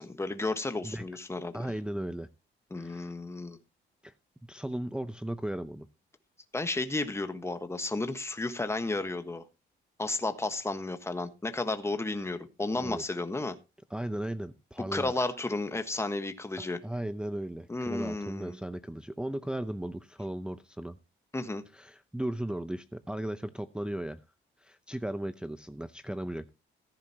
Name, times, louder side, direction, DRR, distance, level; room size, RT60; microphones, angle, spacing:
voice 1, 0.0-1.6 2.7-3.6 6.5-9.4 10.0-13.5 14.9-16.8 17.7-18.6 21.3-21.6, left 2 dB, 15° left, 9 dB, 1.3 m, -33 dB
voice 2, 1.5-2.3 2.8-3.1 4.0-4.1 4.5-5.9 12.8-13.0 13.9-15.1 16.6-21.0 21.7-24.2 24.6-26.5, right 1 dB, 5° right, 10 dB, 0.6 m, -36 dB
14.5 x 10.0 x 2.9 m, 0.28 s
cardioid pair, 90°, 20 cm